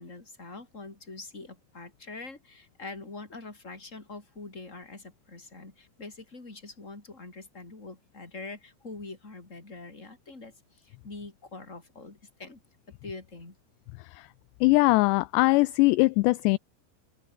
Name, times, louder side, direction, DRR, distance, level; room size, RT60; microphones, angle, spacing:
voice 1, 0.0-12.6 12.9-13.5, left 3 dB, 15° left, 4.8 m, -44 dB
voice 2, 14.6-16.6, left 23 dB, 85° left, 2.5 m, -21 dB
omnidirectional pair, 5.4 m